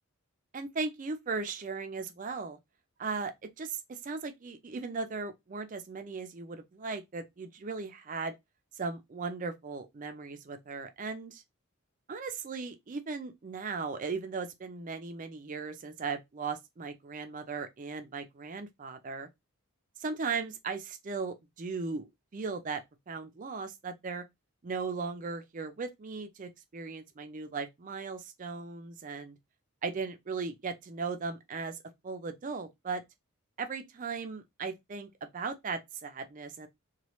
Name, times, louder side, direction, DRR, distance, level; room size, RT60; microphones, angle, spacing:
voice 1, 0.5-2.6 3.0-8.3 8.8-11.4 12.1-19.3 20.0-22.8 23.1-24.2 24.6-29.4 29.8-31.8 32.0-33.0 33.6-36.7, right 4 dB, 35° right, 0.4 m, -37 dB
3.0 x 2.3 x 3.0 m
head